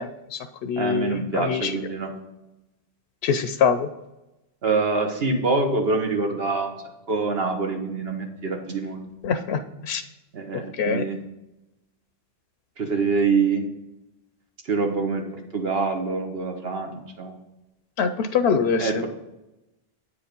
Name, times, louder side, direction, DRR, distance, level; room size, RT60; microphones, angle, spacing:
voice 1, 0.0-1.7 3.2-3.9 9.2-10.0 10.7-11.0 18.0-19.1, left 6 dB, 90° left, 10 dB, 0.8 m, -24 dB
voice 2, 0.8-2.1 4.6-6.8 7.1-9.0 10.3-11.2 12.8-13.6 14.6-15.3 15.5-17.3 18.8-19.1, right 4 dB, 70° right, 4 dB, 1.4 m, -25 dB
8.7 x 5.0 x 5.2 m, 0.96 s
omnidirectional pair, 1.0 m